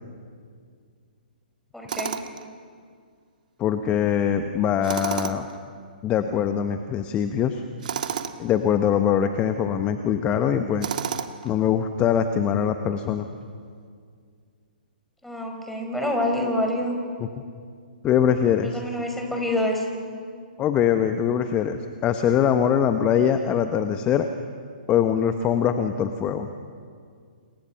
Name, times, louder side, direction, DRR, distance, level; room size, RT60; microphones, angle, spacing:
voice 1, 1.7-2.1 15.2-16.9 18.7-19.8, left 1 dB, 5° left, 2 dB, 4.9 m, -26 dB
Tools, 1.9-2.5 4.8-5.6 7.8-8.4 10.8-11.5, right 8 dB, 55° right, 1.7 m, -30 dB
voice 2, 3.6-5.5 6.0-7.6 8.4-10.9 11.4-13.3 18.0-18.8 20.6-24.3 24.9-26.5, left 8 dB, 20° left, 8 dB, 1.2 m, -22 dB
28.5 x 28.5 x 5.9 m, 2.2 s
figure-of-eight pair, 125°, 5 cm